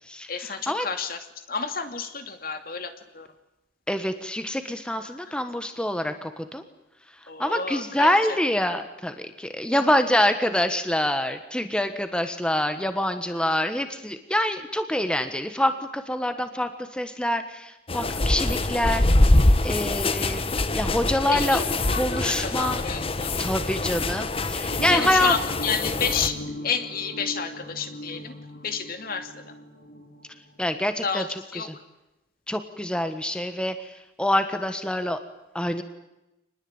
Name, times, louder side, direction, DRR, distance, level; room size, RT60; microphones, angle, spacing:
voice 1, 0.3-1.2 1.5-3.3 5.0-5.3 7.3-8.4 9.7-9.8 13.3-13.4 21.2-23.3 24.9-26.4 26.6-28.4 28.6-29.6 31.0-31.7, left 6 dB, 55° left, 8 dB, 2.5 m, -31 dB
voice 2, 3.9-6.6 7.4-21.6 22.0-22.8 23.4-25.3 30.6-31.2 32.5-35.2 35.5-35.8, left 1 dB, 5° left, 8 dB, 1.5 m, -26 dB
sound 1, 17.9-26.3, left 2 dB, 30° left, 1.1 m, -24 dB
sound 2, 24.7-30.9, left 1 dB, 85° left, 4.7 m, -39 dB
27.0 x 20.5 x 8.9 m, 0.94 s
head